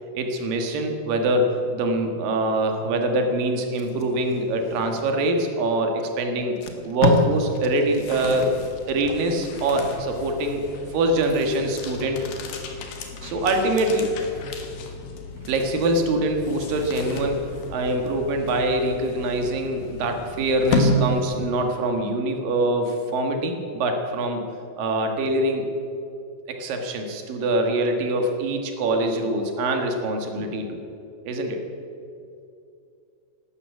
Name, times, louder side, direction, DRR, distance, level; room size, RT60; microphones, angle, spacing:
voice 1, 0.1-6.6 6.8-8.4 8.9-12.3 13.2-14.1 15.5-24.4 24.8-25.7 26.5-30.8 31.3-31.6, right 1 dB, 80° right, 4 dB, 3.4 m, -24 dB
Packing tape duct tape, 3.6-5.3 6.0-6.1 6.4-9.4 9.8-10.0, left 3 dB, 70° left, 0.9 m, -29 dB
sound 1, 7.7-21.8, left 2 dB, 90° left, 3.4 m, -32 dB
12.5 x 12.5 x 8.3 m, 2.6 s
omnidirectional pair, 4.0 m